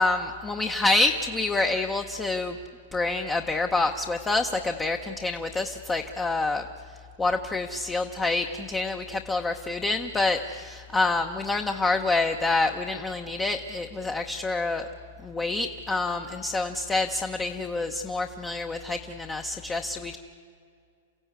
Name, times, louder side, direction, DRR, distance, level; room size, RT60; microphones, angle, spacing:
voice 1, 0.0-2.6 2.9-6.6 7.2-14.9 15.2-20.2, left 3 dB, 10° left, 5 dB, 0.8 m, -27 dB
29.0 x 16.0 x 9.5 m, 2.3 s
supercardioid pair, 175°, 0 cm